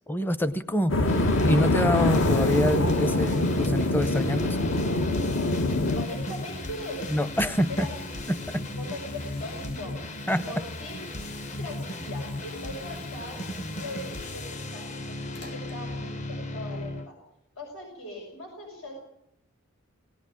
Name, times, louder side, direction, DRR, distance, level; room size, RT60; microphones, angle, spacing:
voice 1, 0.1-1.1 1.5-4.6 7.1-7.9 8.3-8.6 10.3-10.4, equal, 10° left, 14 dB, 0.7 m, -26 dB
sound 1, 0.9-6.0, left 2 dB, 65° left, 1.3 m, -24 dB
sound 2, 1.1-17.1, left 1 dB, 35° left, 0.9 m, -36 dB
Bathtub (filling or washing), 1.7-16.5 17.6-17.7, left 2 dB, 50° left, 4.6 m, -48 dB
voice 2, 5.6-7.1 7.4-7.9 8.8-9.9 10.4-11.0 11.6-13.4 13.7-17.2 17.6-18.9, left 1 dB, 85° left, 1 dB, 6.0 m, -40 dB
18.5 x 18.0 x 8.8 m, 0.76 s
head